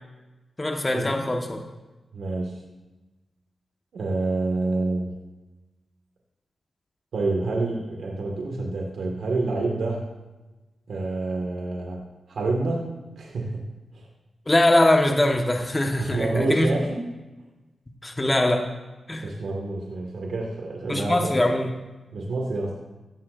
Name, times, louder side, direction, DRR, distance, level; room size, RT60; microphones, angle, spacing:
voice 1, 0.6-1.6 14.5-16.7 18.0-18.7 19.1-19.3 20.9-21.7, left 1 dB, 20° left, 2 dB, 1.4 m, -22 dB
voice 2, 2.1-2.6 3.9-5.2 7.1-10.1 10.9-12.9 13.2-13.7 13.9-14.0 16.0-17.1 19.2-21.3 22.1-22.8, right 2 dB, 80° right, -1 dB, 1.8 m, -28 dB
16.5 x 13.0 x 2.6 m, 1.1 s
wide cardioid pair, 90°, 0 cm